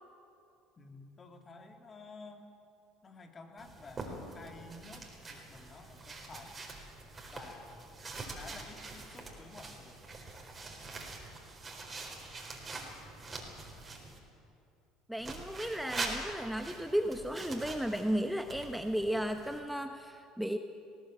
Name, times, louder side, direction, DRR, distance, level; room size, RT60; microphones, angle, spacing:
voice 1, 0.8-2.6 3.0-6.6 7.3-8.0 8.3-10.0, left 3 dB, 35° left, 5 dB, 2.8 m, -51 dB
sound 1, 3.6-14.2 15.2-19.6, right 3 dB, 25° right, 4.3 m, -44 dB
voice 2, 15.1-20.6, equal, 5° right, 7 dB, 1.0 m, -34 dB
19.5 x 17.0 x 8.8 m, 2.6 s
hypercardioid pair, 70°, 0 cm